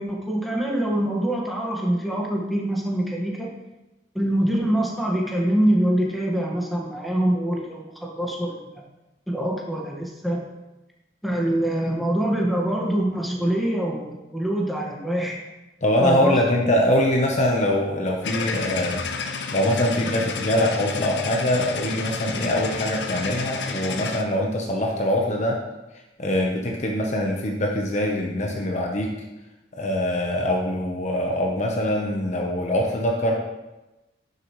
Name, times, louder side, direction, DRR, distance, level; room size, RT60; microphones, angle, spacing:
voice 1, 0.0-3.5 4.1-8.6 9.3-10.4 11.2-15.4 16.0-16.4, right 1 dB, ahead, -3 dB, 1.6 m, -24 dB
voice 2, 15.8-19.0 19.5-25.6 26.2-29.1 29.8-33.3, left 1 dB, 40° left, 0 dB, 0.9 m, -23 dB
sound 1, 18.2-24.2, left 4 dB, 70° left, 0.8 m, -31 dB
11.5 x 6.9 x 3.2 m, 1.0 s
head